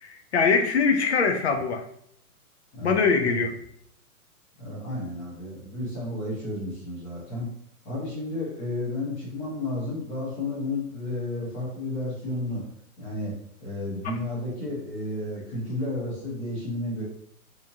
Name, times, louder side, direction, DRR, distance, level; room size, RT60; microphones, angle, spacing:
voice 1, 0.0-1.8 2.8-3.5, left 5 dB, 50° left, 6 dB, 0.5 m, -23 dB
voice 2, 2.7-3.3 4.6-7.5 7.8-12.7 13.0-13.3 13.6-17.0, left 1 dB, 20° left, -6 dB, 1.1 m, -32 dB
3.4 x 3.0 x 2.6 m, 0.70 s
hypercardioid pair, 170°, 45 cm